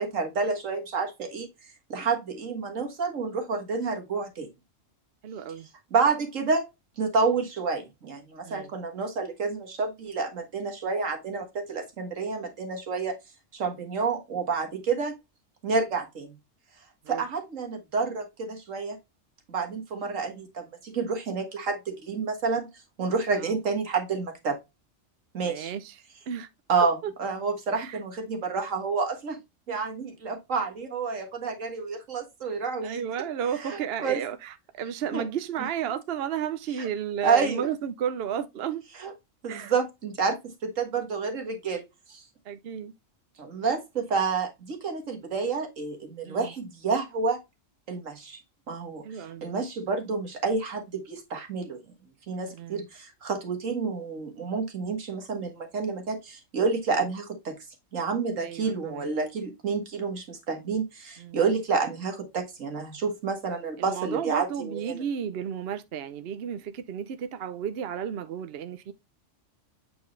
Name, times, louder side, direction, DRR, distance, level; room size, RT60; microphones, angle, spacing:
voice 1, 0.0-1.5 1.9-4.5 5.9-6.7 7.0-13.2 13.5-15.1 15.6-16.4 17.1-19.0 19.5-22.7 23.0-24.6 25.3-25.7 26.7-29.4 29.7-33.0 33.6-34.2 35.1-35.3 36.8-36.9 37.2-37.7 39.0-39.1 39.4-42.2 43.4-47.4 47.9-49.0 49.4-51.8 52.3-57.5 57.9-65.0, right 4 dB, 80° right, 2.0 m, -29 dB
voice 2, 5.2-5.7 8.4-8.7 17.0-17.2 23.3-23.5 25.4-26.5 26.8-27.1 27.7-28.0 32.8-38.8 39.5-39.7 42.4-42.9 46.2-46.5 49.0-49.5 52.3-52.9 58.4-59.1 61.2-61.4 63.8-68.9, right 8 dB, 60° right, 0.8 m, -33 dB
7.8 x 4.8 x 3.2 m
omnidirectional pair, 1.3 m